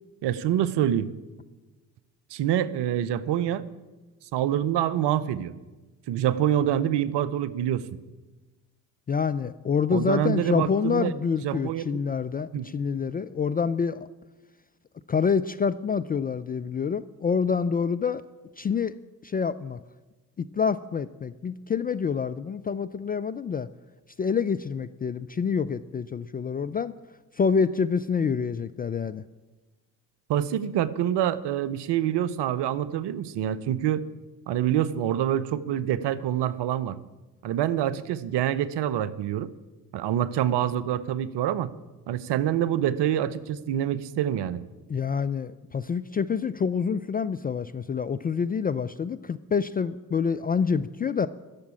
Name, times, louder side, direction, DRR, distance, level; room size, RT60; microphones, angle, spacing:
voice 1, 0.2-1.1 2.3-3.6 4.3-5.5 6.1-7.8 9.9-11.1 11.4-11.8 12.5-12.6 30.3-34.1 34.5-37.0 37.4-39.5 39.9-41.7 42.1-44.6, right 11 dB, 60° right, 17 dB, 0.8 m, -26 dB
voice 2, 9.1-14.1 15.1-18.2 18.6-18.9 19.2-19.8 20.4-23.7 24.2-26.9 27.3-29.2 44.9-51.3, left 6 dB, 20° left, 12 dB, 0.3 m, -27 dB
12.0 x 7.2 x 9.7 m, 1.2 s
hypercardioid pair, 45°, 47 cm